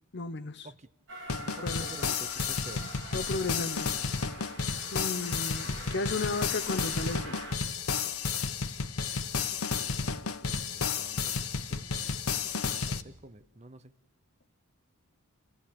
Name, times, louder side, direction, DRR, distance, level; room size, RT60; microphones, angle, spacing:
voice 1, 0.1-0.7 1.6-1.9 3.1-4.3 4.9-7.4, left 3 dB, 50° left, 0.9 m, -34 dB
Train, 1.1-7.5, right 2 dB, 60° right, 3.8 m, -44 dB
sound 1, 1.3-13.0, left 5 dB, 90° left, 1.1 m, -32 dB
voice 2, 1.4-3.1 9.7-10.2 10.5-12.2 12.6-13.9, right 2 dB, 30° right, 0.9 m, -50 dB
29.0 x 16.5 x 8.8 m
head